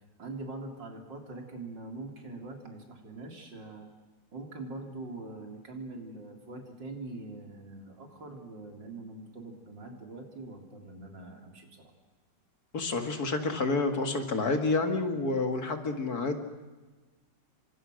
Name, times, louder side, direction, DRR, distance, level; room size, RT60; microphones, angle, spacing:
voice 1, 0.2-3.9 4.3-11.9, right 2 dB, 80° right, 3 dB, 4.1 m, -43 dB
voice 2, 12.7-16.4, left 3 dB, 55° left, 6 dB, 2.5 m, -29 dB
28.0 x 25.0 x 6.4 m, 1.3 s
omnidirectional pair, 1.9 m